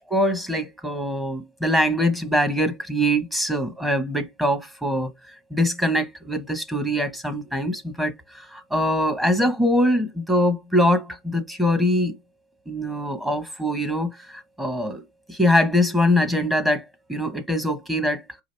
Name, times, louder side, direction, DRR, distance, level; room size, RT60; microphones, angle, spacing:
voice 1, 0.1-5.1 5.5-12.2 12.7-16.8 17.1-18.2, left 1 dB, 10° right, 0.9 m, -23 dB
4.8 x 2.4 x 3.3 m
supercardioid pair, 115°, 0 cm